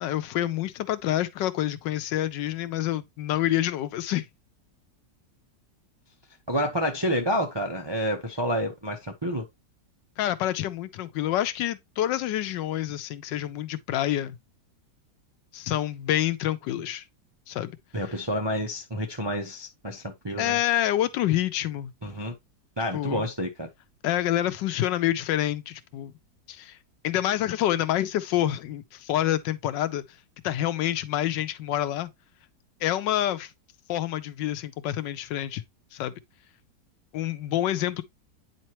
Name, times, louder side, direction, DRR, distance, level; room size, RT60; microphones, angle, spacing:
voice 1, 0.0-4.3 10.2-14.4 15.5-17.0 17.5-17.8 20.4-21.9 22.9-23.3 24.0-26.1 26.5-26.8 27.0-30.0 30.4-32.1 32.8-33.5 33.9-35.6 35.9-36.1 37.1-38.0, left 13 dB, 85° left, 1.3 m, -27 dB
voice 2, 6.5-9.4 17.9-20.6 22.0-22.3 22.8-23.7, equal, 35° right, 0.4 m, -29 dB
9.1 x 4.4 x 3.0 m
omnidirectional pair, 1.9 m